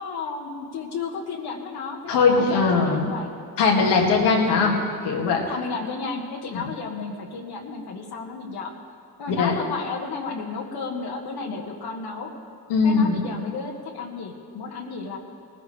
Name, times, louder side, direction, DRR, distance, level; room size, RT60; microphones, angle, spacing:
voice 1, 0.0-3.3 4.5-4.6 5.5-8.7 9.2-12.3 12.8-15.2, left 4 dB, 70° left, 0 dB, 1.6 m, -33 dB
voice 2, 2.1-3.0 3.6-4.7 5.0-5.5 6.5-6.6 9.3-9.5 12.7-13.2, left 4 dB, 90° left, 0 dB, 2.2 m, -20 dB
19.0 x 14.5 x 3.4 m, 2.2 s
cardioid pair, 75°, 40 cm